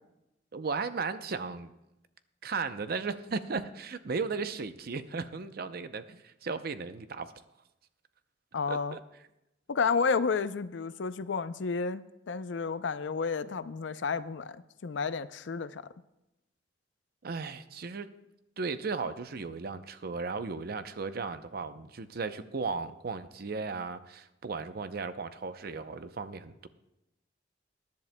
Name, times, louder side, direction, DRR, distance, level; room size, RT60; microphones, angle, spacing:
voice 1, 0.5-1.7 2.4-7.3 8.7-9.0 17.2-18.1 18.6-26.7, right 4 dB, 55° right, 11 dB, 0.6 m, -36 dB
voice 2, 8.5-9.0 9.7-15.9, left 5 dB, 80° left, 13 dB, 0.5 m, -31 dB
21.5 x 10.5 x 2.2 m, 0.92 s
head